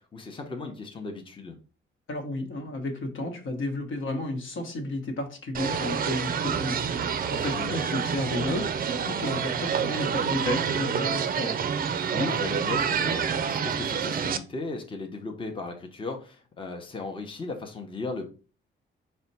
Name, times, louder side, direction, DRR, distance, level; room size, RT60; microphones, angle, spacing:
voice 1, 0.0-1.6 7.4-7.8 12.1-18.3, left 3 dB, 25° left, 3 dB, 0.7 m, -36 dB
voice 2, 2.1-6.8 7.3-11.7, left 2 dB, 70° left, 4 dB, 1.0 m, -32 dB
sound 1, 5.5-14.4, right 7 dB, 45° right, 0.4 m, -28 dB
4.2 x 2.2 x 4.0 m, 0.35 s
cardioid pair, 95°, 21 cm